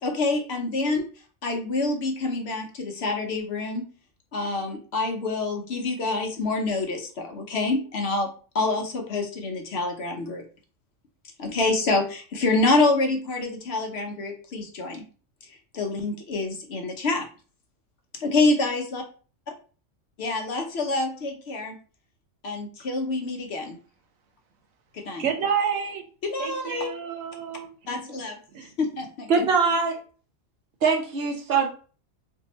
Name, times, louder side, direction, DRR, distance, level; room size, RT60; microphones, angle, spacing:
voice 1, 0.0-1.0 1.4-3.8 4.3-8.3 8.5-10.4 11.4-15.0 15.5-17.3 18.2-19.0 20.2-21.8 22.4-23.8 24.9-25.2 26.2-26.9 27.9-29.5, left 3 dB, 60° left, 0.8 m, -27 dB
voice 2, 25.2-26.0 26.4-27.7 27.9-28.2 28.5-28.7, right 7 dB, 85° right, 1.1 m, -29 dB
voice 3, 29.3-30.0 30.8-31.7, right 5 dB, 60° right, 0.8 m, -22 dB
2.7 x 2.6 x 4.0 m
omnidirectional pair, 1.4 m